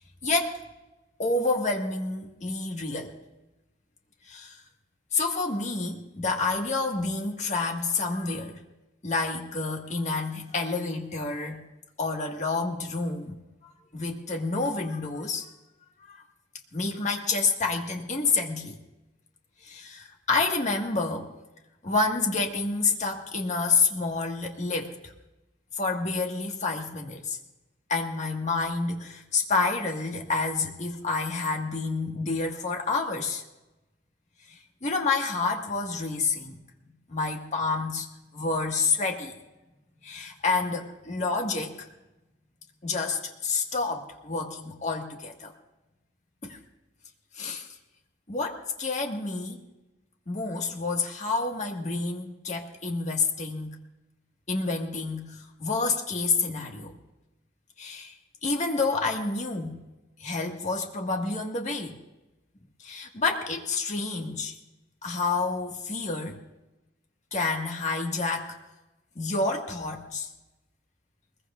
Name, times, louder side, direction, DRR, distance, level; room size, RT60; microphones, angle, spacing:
voice 1, 0.2-0.6 1.2-3.1 4.3-4.6 5.1-8.6 9.0-11.6 12.0-13.3 13.6-15.5 16.1-16.2 16.7-18.7 19.6-21.3 21.8-25.1 25.8-27.4 27.9-33.4 34.5-36.6 37.1-38.1 38.3-39.3 40.0-41.9 42.8-45.5 46.4-46.6 47.3-47.7 48.3-49.6 50.3-53.7 54.5-56.9 57.8-58.1 58.4-59.8 60.2-62.0 62.8-64.5 65.0-66.4 67.3-68.6 69.1-70.3, left 3 dB, 40° left, 1 dB, 1.7 m, -29 dB
22.0 x 21.0 x 2.5 m, 1.0 s
head